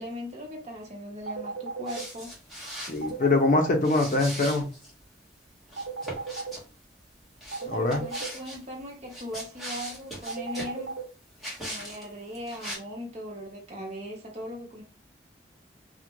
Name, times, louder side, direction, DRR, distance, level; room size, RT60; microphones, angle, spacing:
voice 1, 0.0-2.3 7.6-10.9 11.6-14.8, left 1 dB, 40° right, 0.8 m, -39 dB
sound 1, 1.3-2.0 3.0-3.8 5.8-6.5 7.5-8.3 10.3-11.0, right 4 dB, 90° right, 0.9 m, -34 dB
sound 2, 1.9-3.1 3.8-4.9 5.7-6.6 7.4-8.6 9.0-10.8 11.4-12.0 12.3-12.8, equal, ahead, 1.0 m, -39 dB
voice 2, 2.8-4.7 7.7-8.0, left 2 dB, 45° left, 0.5 m, -23 dB
2.4 x 2.1 x 2.9 m
head